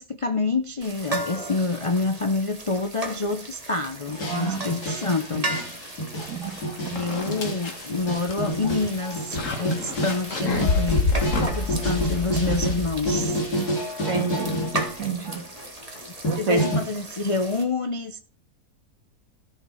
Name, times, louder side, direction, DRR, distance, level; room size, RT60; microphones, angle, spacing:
voice 1, 0.0-5.5 6.7-13.4 16.0-18.2, left 3 dB, 35° left, 8 dB, 0.5 m, -27 dB
sound 1, 0.8-17.6, right 2 dB, 25° right, 2.0 m, -37 dB
sound 2, 4.1-15.0 15.2-16.8, equal, 75° left, 3.6 m, -29 dB
voice 2, 4.3-4.6 6.3-6.5 13.5-13.7 14.1-14.7 15.0-15.4 16.3-16.6, right 4 dB, 55° right, 4 dB, 2.6 m, -27 dB
sound 3, 6.5-6.6 7.0-13.3, left 3 dB, 55° left, 2.2 m, -28 dB
14.0 x 5.9 x 5.6 m, 0.36 s
omnidirectional pair, 1.7 m